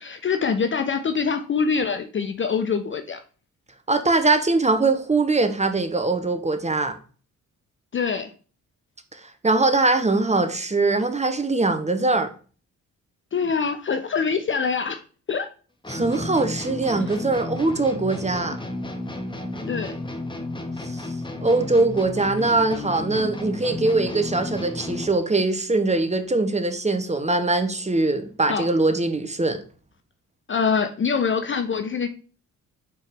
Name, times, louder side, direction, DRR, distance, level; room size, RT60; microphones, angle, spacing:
voice 1, 0.0-3.2 7.9-8.3 13.3-15.0 15.3-15.5 19.7-19.9 28.5-28.7 30.5-32.1, left 5 dB, 30° left, 8 dB, 0.6 m, -24 dB
voice 2, 3.9-6.9 9.4-12.3 15.9-18.6 20.9-21.0 21.4-29.6, right 3 dB, 15° right, 8 dB, 1.0 m, -22 dB
sound 1, 15.8-25.3, left 2 dB, 10° left, 1.1 m, -32 dB
5.9 x 4.5 x 3.6 m, 0.38 s
figure-of-eight pair, 40°, 43 cm